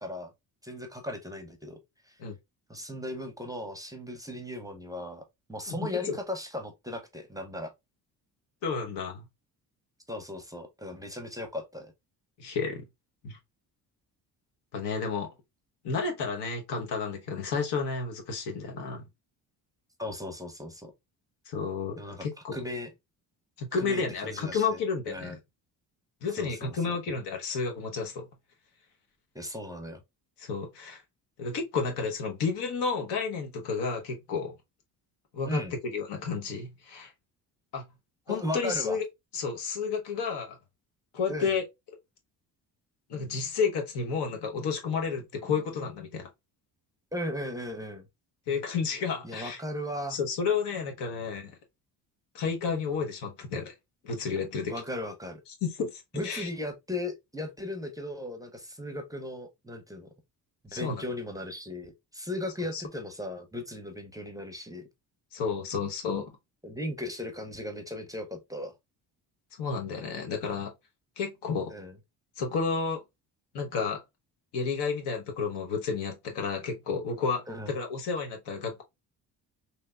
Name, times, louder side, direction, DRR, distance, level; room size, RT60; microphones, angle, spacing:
voice 1, 0.0-0.3 0.6-1.8 2.1-2.2 2.7-7.7 10.1-11.9 20.0-20.9 22.0-22.3 22.5-22.9 23.8-24.8 25.1-25.4 26.3-27.0 29.3-30.0 35.5-35.7 38.3-39.0 41.3-41.5 47.1-48.0 49.2-50.2 54.7-55.4 56.1-60.1 60.7-64.8 66.6-68.7 71.7-72.0 77.5-77.8, left 1 dB, 10° right, 0.6 m, -37 dB
voice 2, 8.6-9.2 12.4-12.8 13.2-13.4 14.7-15.3 15.8-19.0 21.5-22.6 23.6-25.4 26.2-28.3 30.4-31.0 31.4-34.6 35.3-35.6 35.9-37.1 37.7-37.8 38.3-39.0 39.3-40.6 41.1-41.6 43.1-46.3 48.5-49.6 50.1-51.5 52.3-53.7 54.0-54.7 55.6-56.5 60.7-61.0 62.7-62.8 65.3-66.3 69.6-70.7 71.2-71.7 72.4-73.0 73.5-74.0 74.5-78.8, left 5 dB, 80° left, 1.0 m, -31 dB
3.3 x 2.8 x 2.3 m
cardioid pair, 95°, 40 cm